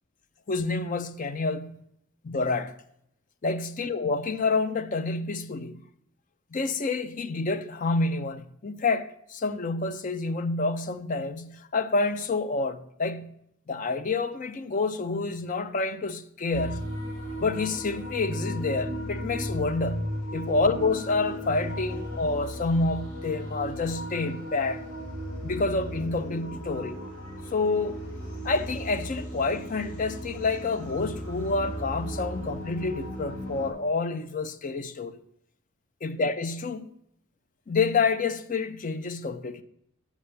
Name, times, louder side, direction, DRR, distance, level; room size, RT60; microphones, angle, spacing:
voice 1, 0.5-1.8 2.2-2.7 3.4-5.8 6.5-13.4 13.7-16.9 17.4-24.8 25.4-27.0 27.5-28.0 28.4-35.2 36.0-36.9 37.7-39.6, left 3 dB, 35° left, 0.4 m, -28 dB
sound 1, 16.5-33.7, equal, 85° left, 2.4 m, -36 dB
6.8 x 6.0 x 6.6 m
head